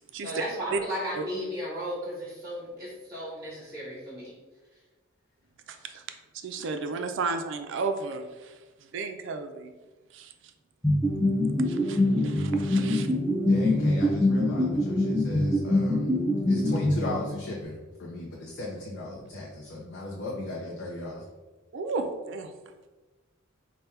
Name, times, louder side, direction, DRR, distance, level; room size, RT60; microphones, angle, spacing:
voice 1, 0.2-4.3, equal, 15° right, -6 dB, 0.8 m, -35 dB
voice 2, 5.7-6.0 6.3-8.5 8.9-9.7 10.1-10.3 11.7-13.1 21.7-22.5, right 4 dB, 65° right, 7 dB, 0.4 m, -33 dB
sound 1, 10.8-17.5, left 1 dB, ahead, 0.4 m, -24 dB
voice 3, 13.4-16.1 16.5-21.2, left 2 dB, 60° left, -2 dB, 0.5 m, -37 dB
3.4 x 2.2 x 4.2 m, 1.2 s
head